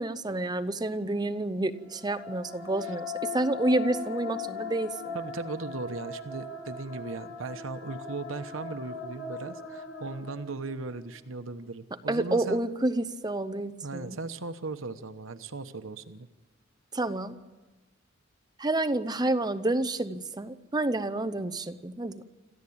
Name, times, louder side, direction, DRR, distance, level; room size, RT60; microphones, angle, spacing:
voice 1, 0.0-5.2 12.1-14.2 16.9-17.4 18.6-22.2, right 2 dB, 20° right, 11 dB, 0.8 m, -29 dB
sound 1, 1.8-11.0, left 4 dB, 75° left, 4.0 m, -39 dB
voice 2, 5.1-12.7 13.8-16.3, right 3 dB, 85° right, 9 dB, 1.0 m, -38 dB
27.0 x 14.5 x 8.7 m, 1.2 s
head